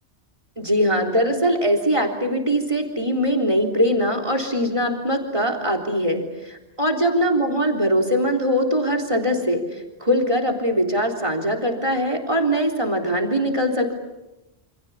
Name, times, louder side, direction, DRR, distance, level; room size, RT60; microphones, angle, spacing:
voice 1, 0.6-13.9, equal, 30° right, 5 dB, 3.7 m, -22 dB
28.5 x 27.5 x 7.2 m, 0.98 s
omnidirectional pair, 1.1 m